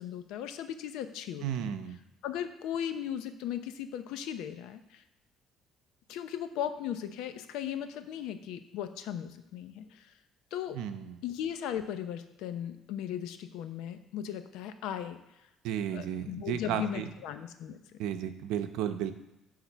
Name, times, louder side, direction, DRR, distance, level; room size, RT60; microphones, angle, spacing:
voice 1, 0.0-1.7 2.2-5.0 6.1-10.1 10.5-10.8 11.2-15.2 15.9-17.8, left 9 dB, 80° left, 10 dB, 0.8 m, -37 dB
voice 2, 1.4-2.0 10.7-11.2 15.6-17.1 18.0-19.1, right 9 dB, 80° right, 8 dB, 0.8 m, -33 dB
10.0 x 3.8 x 7.3 m, 0.93 s
cardioid pair, 120°, 0 cm